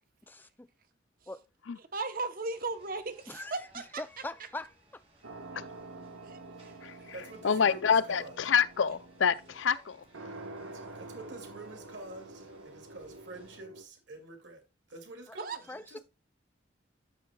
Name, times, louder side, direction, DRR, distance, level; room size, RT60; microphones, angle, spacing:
voice 1, 0.3-0.7 1.3-1.4 3.3-5.0 15.3-15.4 15.7-16.0, left 2 dB, 10° left, 0.4 m, -42 dB
voice 2, 1.9-4.0 6.2-6.7 15.4-15.6, right 3 dB, 45° right, 0.9 m, -36 dB
sound 1, 2.5-13.6, right 1 dB, 30° right, 2.4 m, -63 dB
sound 2, 5.2-13.8, right 2 dB, 90° right, 1.3 m, -48 dB
voice 3, 6.8-8.4 10.6-14.6 14.9-16.0, right 2 dB, 70° right, 2.3 m, -47 dB
voice 4, 7.4-10.0, left 6 dB, 75° left, 0.5 m, -27 dB
12.5 x 6.4 x 2.3 m
head